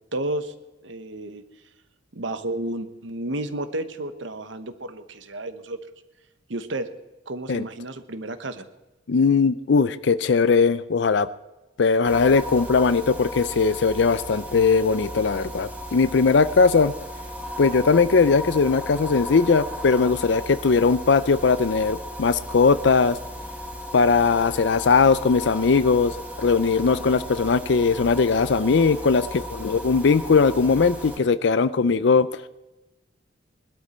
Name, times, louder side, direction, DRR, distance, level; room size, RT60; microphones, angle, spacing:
voice 1, 0.1-0.5 0.8-1.4 2.1-5.8 6.5-6.9 7.3-8.7, right 1 dB, 70° right, 10 dB, 1.1 m, -31 dB
voice 2, 9.1-11.3 11.8-16.9 17.6-23.2 23.9-32.3, left 4 dB, 65° left, 15 dB, 0.5 m, -19 dB
sound 1, 12.0-31.2, equal, 5° right, 4.0 m, -36 dB
20.5 x 12.5 x 4.3 m, 1.0 s
head